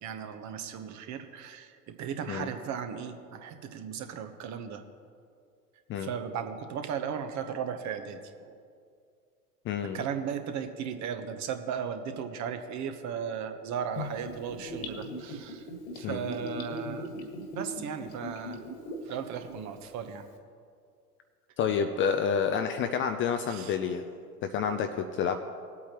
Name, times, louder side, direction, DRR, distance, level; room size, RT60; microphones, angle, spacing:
voice 1, 0.0-4.8 6.0-8.6 9.9-15.7 15.9-17.1 17.5-18.6 19.0-20.3 23.5-23.7, right 7 dB, 35° right, 7 dB, 1.1 m, -36 dB
voice 2, 9.7-10.0 16.0-16.3 21.6-24.1 24.4-25.4, left 7 dB, 25° left, 7 dB, 0.5 m, -29 dB
Gurgling / Bathtub (filling or washing), 14.0-19.1 19.4-19.5, equal, 55° left, 1.9 m, -38 dB
19.5 x 8.4 x 3.0 m, 2.3 s
hypercardioid pair, 90°, 48 cm